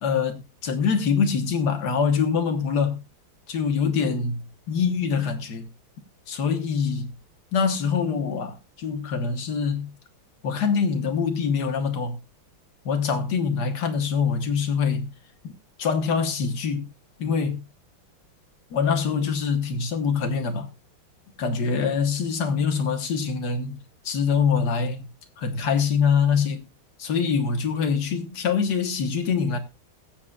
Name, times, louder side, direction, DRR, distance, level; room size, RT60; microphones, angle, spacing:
voice 1, 0.0-3.0 3.5-4.4 4.7-5.7 6.3-7.1 7.5-9.9 10.4-12.2 12.9-15.1 15.8-16.9 17.2-17.6 18.7-20.7 21.4-25.1 25.4-26.6 27.0-29.6, left 6 dB, 55° left, 1.8 m, -24 dB
21.0 x 7.5 x 2.4 m
omnidirectional pair, 2.3 m